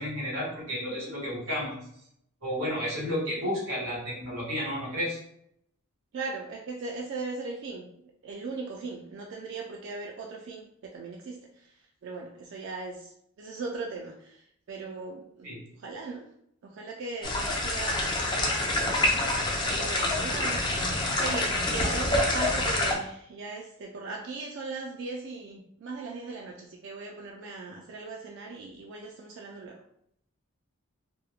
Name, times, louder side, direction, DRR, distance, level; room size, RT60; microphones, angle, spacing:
voice 1, 0.0-1.7 2.4-5.2 15.4-15.6, equal, 75° right, -5 dB, 1.4 m, -32 dB
voice 2, 6.1-7.9 8.2-11.7 12.0-16.3 16.6-19.0 19.3-20.6 21.0-29.8, right 3 dB, 55° right, 0 dB, 0.3 m, -38 dB
sound 1, 17.2-22.9, left 2 dB, 20° left, 0.3 m, -27 dB
2.9 x 2.1 x 2.3 m, 0.72 s
head